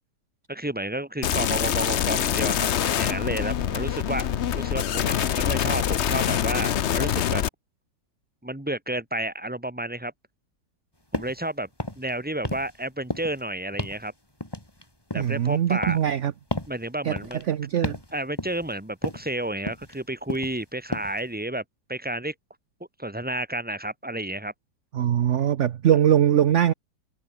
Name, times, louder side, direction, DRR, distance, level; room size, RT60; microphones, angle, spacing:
voice 1, 0.5-4.3 4.5-7.4 8.4-10.1 11.1-11.7 12.0-14.1 15.1-16.0 16.7-17.4 18.1-21.6 21.9-22.3 23.0-24.5, right 1 dB, 5° right, 2.3 m, -31 dB
sound 1, 1.2-7.5, left 10 dB, 60° left, 0.7 m, -25 dB
sound 2, 11.1-11.4 11.7-12.1 12.4-12.8 13.1-13.4 13.8-14.1 14.4-15.4 15.8-16.1 16.5-16.8 17.2-17.4 17.8-18.1 18.4-18.7 19.0-19.3 19.7-20.0 20.3-20.6 20.9-21.2, left 1 dB, 10° left, 3.8 m, -32 dB
voice 2, 15.1-16.3 17.0-17.2 17.5-18.0 24.9-26.7, right 10 dB, 55° right, 0.8 m, -21 dB
omnidirectional pair, 2.0 m